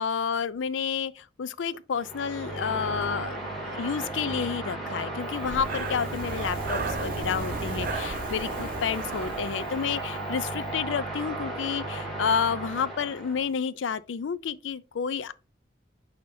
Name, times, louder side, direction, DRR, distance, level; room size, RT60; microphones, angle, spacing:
voice 1, 0.0-3.4 3.7-15.3, left 6 dB, 90° left, 0.4 m, -30 dB
sound 1, 1.9-13.5, right 2 dB, ahead, 2.6 m, -35 dB
Breathing, 5.3-10.3, right 4 dB, 50° right, 0.8 m, -36 dB
6.4 x 5.5 x 2.7 m
head